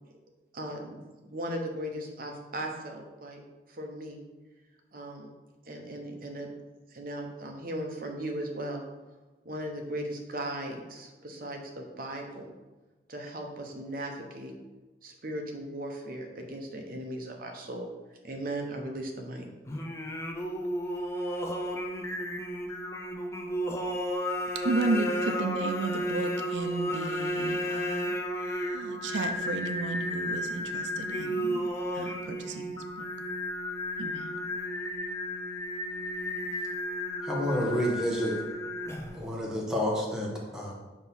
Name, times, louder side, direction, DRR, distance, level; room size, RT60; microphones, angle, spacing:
voice 1, 1.2-3.4 3.7-4.2 4.9-5.3 5.7-6.5 6.9-8.8 9.4-12.5 13.1-14.5 15.0-17.9 18.2-19.5, right 1 dB, 50° right, 2 dB, 0.8 m, -37 dB
Singing, 19.7-39.3, equal, 15° left, 0.5 m, -33 dB
voice 2, 24.6-28.1 28.4-31.7 31.9-33.1 34.0-34.3, right 3 dB, 90° right, 7 dB, 0.5 m, -33 dB
voice 3, 37.2-38.4 39.1-40.7, equal, 5° right, -3 dB, 1.0 m, -29 dB
6.2 x 3.0 x 5.4 m, 1.2 s
head